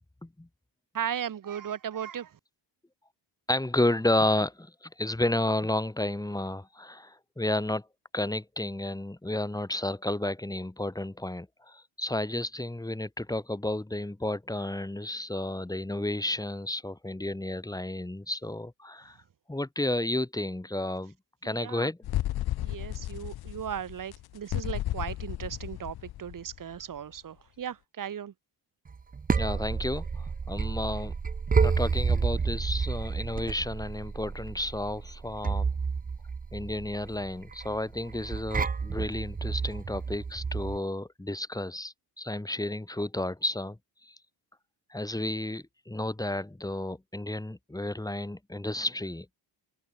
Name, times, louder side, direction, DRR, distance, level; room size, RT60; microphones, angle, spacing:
voice 1, 0.9-2.4 21.4-21.9 22.6-28.3, right 9 dB, 45° right, 1.8 m, -36 dB
voice 2, 3.5-7.9 8.1-19.2 19.5-21.1 21.4-22.0 29.3-31.1 31.6-35.7 36.5-43.8 44.0-44.1 44.9-49.3, left 1 dB, 10° left, 5.6 m, -32 dB
sound 1, 22.0-26.8, left 14 dB, 55° left, 0.7 m, -33 dB
sound 2, 28.9-40.8, right 5 dB, 20° right, 0.7 m, -30 dB
cardioid pair, 115°, 44 cm